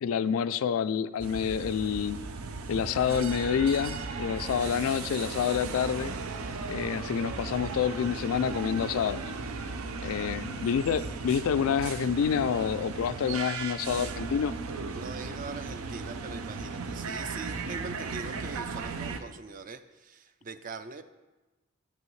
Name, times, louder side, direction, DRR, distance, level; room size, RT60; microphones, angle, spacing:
voice 1, 0.0-2.2 2.7-6.1 6.7-9.2 10.0-14.5, left 7 dB, 75° left, 14 dB, 0.3 m, -28 dB
sound 1, 1.2-19.2, right 4 dB, 85° right, 0.6 m, -36 dB
voice 2, 10.0-10.4 14.9-21.0, right 4 dB, 40° right, 11 dB, 0.4 m, -42 dB
10.5 x 8.3 x 3.1 m, 1.2 s
head